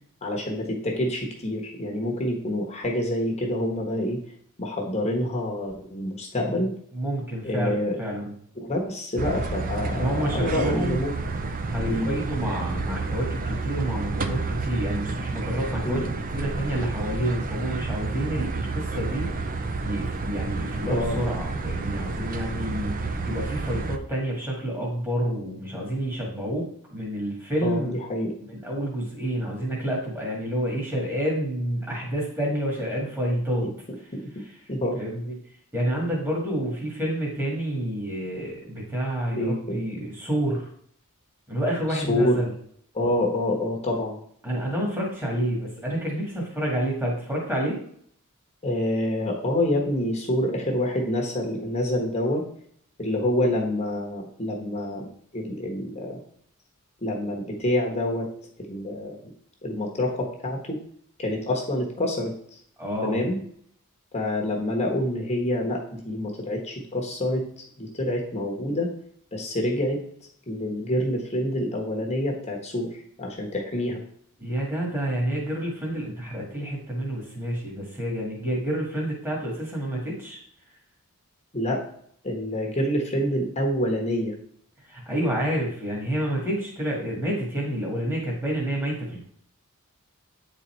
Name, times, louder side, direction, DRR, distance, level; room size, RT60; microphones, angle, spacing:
voice 1, 0.2-4.2 4.6-6.7 7.4-8.0 8.6-11.1 11.9-12.1 15.8-16.0 20.9-21.2 27.6-28.3 34.1-34.2 34.7-35.0 39.3-40.1 41.9-42.4 42.9-44.2 48.6-52.4 53.0-55.1 55.3-56.2 57.0-58.3 58.7-59.3 59.6-60.8 61.2-62.6 63.0-63.4 64.1-68.9 69.3-70.0 70.5-74.0 81.5-81.8 82.2-84.3, left 1 dB, 30° left, 0 dB, 1.2 m, -27 dB
voice 2, 6.9-8.3 9.9-11.0 11.7-28.0 28.5-33.7 35.0-35.4 35.7-40.6 41.5-42.5 44.4-47.8 62.8-63.2 74.4-80.4 84.8-89.2, right 1 dB, 10° right, -4 dB, 1.9 m, -29 dB
sound 1, 9.2-24.0, right 3 dB, 40° right, 0.5 m, -30 dB
8.7 x 4.1 x 4.4 m, 0.64 s
head